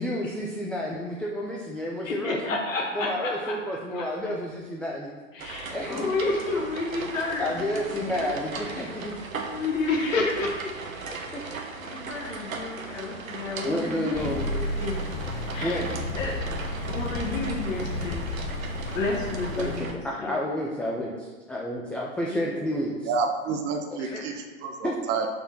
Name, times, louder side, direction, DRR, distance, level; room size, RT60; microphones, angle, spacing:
voice 1, 0.0-2.6 2.9-5.1 5.7-6.1 7.4-9.1 11.3-11.4 13.6-14.5 15.6-15.9 19.6-23.1 24.8-25.0, left 1 dB, 5° left, -3 dB, 0.3 m, -30 dB
voice 2, 2.0-3.6 3.9-4.1 5.3-8.3 8.7-8.8 9.4-10.7 11.0-11.2 11.5-14.9 15.5-15.8 16.2-16.3 16.9-18.3 18.9-20.3 22.3-22.6 24.0-24.4, left 3 dB, 75° left, -1 dB, 1.6 m, -31 dB
sound 1, 5.4-19.9, right 4 dB, 90° right, 1.1 m, -38 dB
sound 2, 14.1-19.8, left 2 dB, 40° left, 1.2 m, -32 dB
voice 3, 23.1-25.3, right 4 dB, 25° right, 4 dB, 0.7 m, -29 dB
5.8 x 4.2 x 6.0 m, 1.3 s
hypercardioid pair, 115°, 40 cm